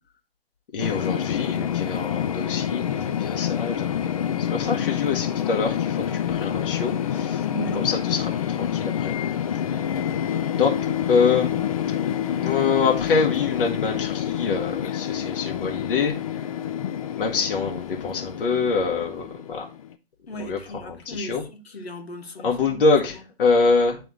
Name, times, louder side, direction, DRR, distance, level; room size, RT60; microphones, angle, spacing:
voice 1, 0.7-7.4 7.7-9.1 9.7-9.8 10.5-10.7 11.1-11.5 12.4-16.1 17.2-19.7 20.4-21.4 22.4-24.0, left 4 dB, 55° left, 1.3 m, -25 dB
sound 1, 0.8-19.9, left 9 dB, 35° left, 0.4 m, -27 dB
voice 2, 7.4-7.9 20.3-22.8, right 1 dB, 75° left, 1.6 m, -36 dB
9.6 x 3.5 x 3.6 m
figure-of-eight pair, 130°, 32 cm